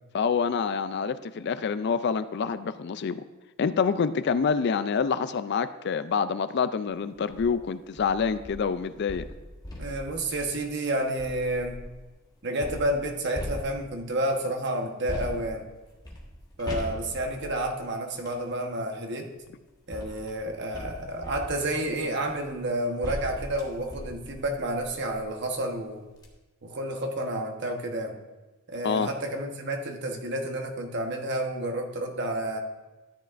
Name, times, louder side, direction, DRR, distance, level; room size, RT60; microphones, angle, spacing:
voice 1, 0.1-3.2 3.6-9.2 28.8-29.1, left 6 dB, 50° left, 12 dB, 0.4 m, -27 dB
sound 1, 7.2-7.5 8.0-12.0 12.6-14.2 15.1-18.4 19.4-25.3 25.7-25.8 26.1-26.3, equal, 20° left, 1.5 m, -40 dB
voice 2, 9.8-11.8 12.4-15.7 16.6-19.3 19.9-26.0 26.6-28.2 28.7-32.6, right 1 dB, 55° right, 3 dB, 1.1 m, -30 dB
13.0 x 10.0 x 2.5 m, 1.2 s
head